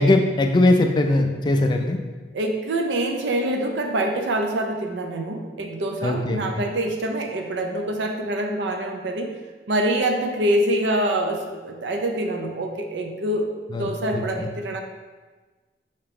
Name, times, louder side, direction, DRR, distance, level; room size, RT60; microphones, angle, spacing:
voice 1, 0.0-2.0 6.0-6.6 13.7-14.5, left 2 dB, 25° left, 4 dB, 0.3 m, -21 dB
voice 2, 2.3-9.3 9.7-14.8, right 1 dB, 70° right, 3 dB, 0.5 m, -25 dB
4.7 x 2.8 x 3.4 m, 1.3 s
head